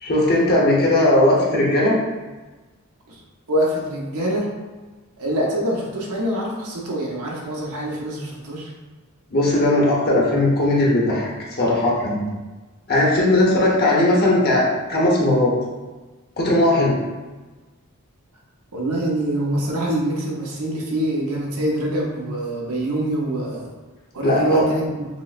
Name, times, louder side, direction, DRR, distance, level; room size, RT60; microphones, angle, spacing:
voice 1, 0.0-1.9 9.3-11.3 11.6-12.3 12.9-15.5 16.4-16.9 24.2-24.6, left 1 dB, 45° left, -4 dB, 0.9 m, -18 dB
voice 2, 3.5-4.5 5.2-8.7 13.5-13.8 18.7-23.7 24.1-25.1, right 1 dB, 80° right, -2 dB, 0.8 m, -25 dB
6.0 x 2.1 x 2.4 m, 1.3 s
head